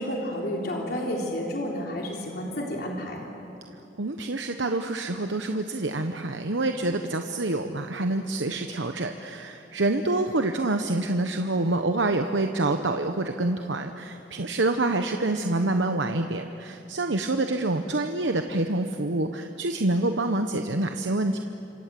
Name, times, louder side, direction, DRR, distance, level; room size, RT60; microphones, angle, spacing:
voice 1, 0.0-3.3, equal, 60° left, -1 dB, 3.6 m, -31 dB
voice 2, 4.0-21.4, right 2 dB, 80° right, 6 dB, 1.0 m, -27 dB
27.5 x 25.5 x 7.7 m, 3.0 s
head